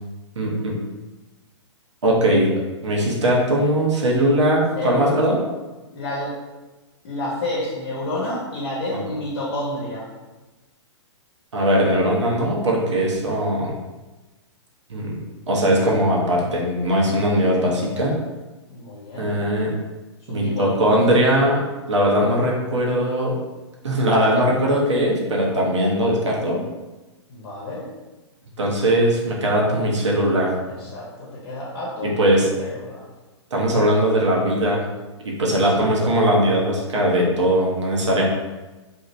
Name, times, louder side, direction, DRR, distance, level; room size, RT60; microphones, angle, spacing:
voice 1, 0.4-0.8 2.0-2.5 2.8-5.4 11.5-13.7 14.9-15.2 15.5-18.1 19.2-19.7 20.3-21.6 21.9-23.3 23.8-26.6 28.6-30.5 32.0-32.5 33.5-34.8 35.2-38.2, equal, 75° right, -2 dB, 0.8 m, -20 dB
voice 2, 4.7-5.2 5.9-6.4 7.0-10.1 18.7-19.3 20.3-20.8 21.2-21.3 27.3-27.9 30.6-33.1 35.6-36.1, left 1 dB, 50° left, -5 dB, 0.9 m, -30 dB
2.9 x 2.7 x 2.5 m, 1.2 s
figure-of-eight pair, 115°, 15 cm